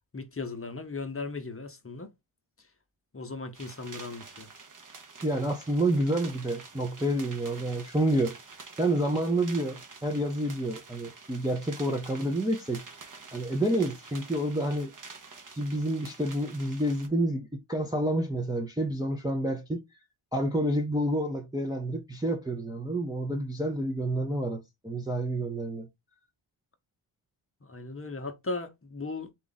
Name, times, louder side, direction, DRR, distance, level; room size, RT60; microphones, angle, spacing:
voice 1, 0.1-2.1 3.1-4.5 27.6-29.3, left 3 dB, 25° left, 0.8 m, -37 dB
sound 1, 3.5-17.1, right 4 dB, 40° right, 0.9 m, -48 dB
voice 2, 5.2-8.4 8.8-12.8 13.3-14.9 15.5-19.8 20.3-25.9, right 1 dB, 10° right, 0.5 m, -29 dB
4.0 x 2.4 x 3.9 m
wide cardioid pair, 115°, 50 cm